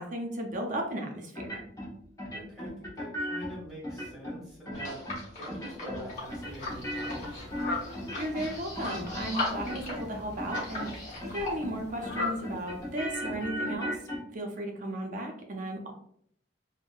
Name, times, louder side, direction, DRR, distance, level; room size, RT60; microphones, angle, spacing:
voice 1, 0.0-1.6 8.2-14.0 14.3-15.9, right 1 dB, 45° right, 2 dB, 0.5 m, -35 dB
sound 1, 1.3-1.9 2.2-3.5 3.8-4.3 4.6-5.2 5.5-6.0 6.3-8.5 8.7-9.3 9.6-10.1 10.4-10.9 11.2-11.8 12.0-14.2, equal, 20° left, 0.7 m, -36 dB
voice 2, 2.3-7.6, equal, 5° right, -7 dB, 1.4 m, -45 dB
sound 2, 4.7-11.5, left 2 dB, 40° left, 1.0 m, -38 dB
Fowl, 6.1-13.5, left 3 dB, 60° left, 0.5 m, -41 dB
3.5 x 2.1 x 2.4 m, 0.67 s
head